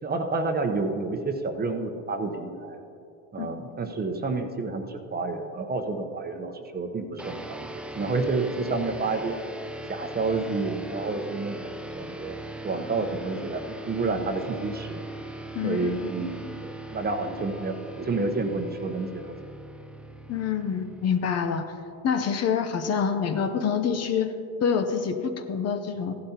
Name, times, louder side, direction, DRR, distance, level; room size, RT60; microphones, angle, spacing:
voice 1, 0.0-2.8 3.3-9.4 9.9-15.0 15.6-19.4, right 3 dB, 25° right, 5 dB, 0.9 m, -30 dB
sound 1, 7.2-22.0, right 1 dB, 5° right, 0.4 m, -40 dB
voice 2, 15.5-16.1 20.3-21.7 22.0-24.3 24.6-26.2, left 6 dB, 40° left, 7 dB, 0.8 m, -26 dB
15.5 x 12.0 x 2.9 m, 2.6 s
cardioid pair, 115°, 38 cm